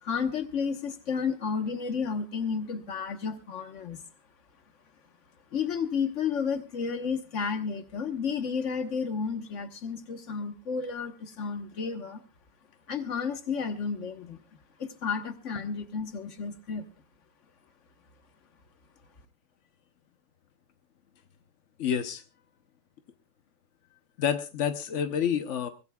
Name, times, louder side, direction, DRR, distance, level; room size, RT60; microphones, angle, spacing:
voice 1, 0.0-4.0 5.5-12.2 12.9-14.4 14.8-16.9, left 6 dB, 40° left, 8 dB, 1.2 m, -32 dB
voice 2, 21.8-22.2 24.2-25.7, left 8 dB, 65° left, 8 dB, 0.7 m, -28 dB
23.0 x 16.5 x 2.3 m, 0.29 s
omnidirectional pair, 2.4 m